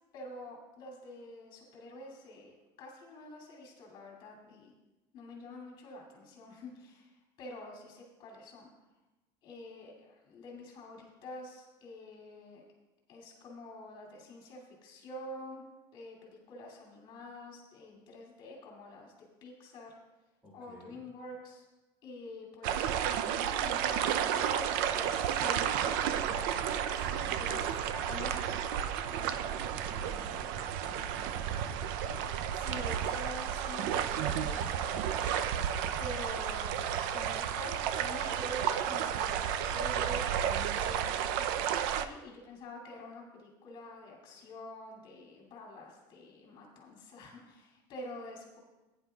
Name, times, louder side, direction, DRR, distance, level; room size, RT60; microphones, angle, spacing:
voice 1, 0.1-4.7 5.1-7.1 7.4-8.7 9.4-12.6 13.1-15.6 15.9-20.0 20.5-21.7 22.0-28.6 32.5-35.5 36.0-48.6, left 1 dB, 50° left, -1 dB, 2.6 m, -47 dB
voice 2, 20.4-21.0 27.2-27.8 29.1-31.3 42.0-42.5 44.3-44.5, equal, 15° right, -3 dB, 2.1 m, -54 dB
sound 1, 22.6-42.1, right 9 dB, 75° right, 0.5 m, -32 dB
16.5 x 9.9 x 2.3 m, 1.1 s
cardioid pair, 155°, 11 cm